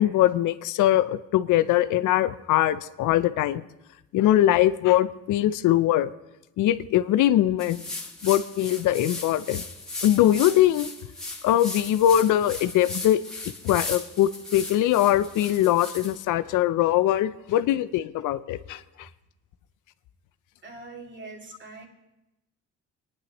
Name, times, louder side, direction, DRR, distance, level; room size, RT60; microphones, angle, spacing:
voice 1, 0.0-3.6 4.1-6.1 6.6-7.8 8.2-9.6 10.0-10.9 11.4-13.2 13.6-19.1, left 12 dB, 85° left, 14 dB, 0.6 m, -22 dB
sound 1, 7.6-16.2, left 2 dB, ahead, 1.6 m, -37 dB
voice 2, 20.6-21.9, right 3 dB, 40° right, 0 dB, 2.6 m, -42 dB
22.0 x 10.0 x 3.0 m, 0.96 s
cardioid pair, 90°, 30 cm